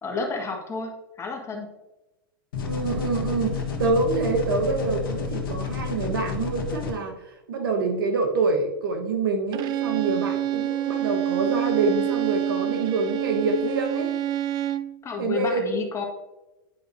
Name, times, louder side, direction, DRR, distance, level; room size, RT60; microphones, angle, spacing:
voice 1, 0.0-1.7 15.0-16.0, left 4 dB, 25° left, 1 dB, 1.7 m, -31 dB
sound 1, 2.5-6.9, left 6 dB, 70° left, 1.5 m, -30 dB
voice 2, 2.6-7.2 7.5-14.1 15.2-15.6, right 3 dB, 75° right, 4 dB, 1.3 m, -26 dB
Bowed string instrument, 9.5-15.0, right 12 dB, 35° right, 0.4 m, -27 dB
10.0 x 5.4 x 2.7 m, 1.0 s
hypercardioid pair, 105°, 12 cm